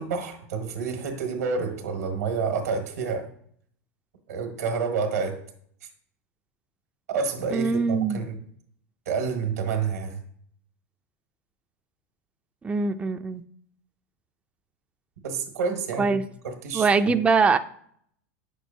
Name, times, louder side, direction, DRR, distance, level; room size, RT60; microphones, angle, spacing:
voice 1, 0.0-3.3 4.3-5.4 7.1-8.4 9.0-10.2 15.2-16.9, right 5 dB, 90° right, 4 dB, 1.5 m, -29 dB
voice 2, 7.5-8.2 12.6-13.4 16.0-16.2 16.7-17.6, right 4 dB, 15° right, 8 dB, 0.4 m, -22 dB
8.6 x 6.2 x 2.7 m, 0.63 s
hypercardioid pair, 110°, 8 cm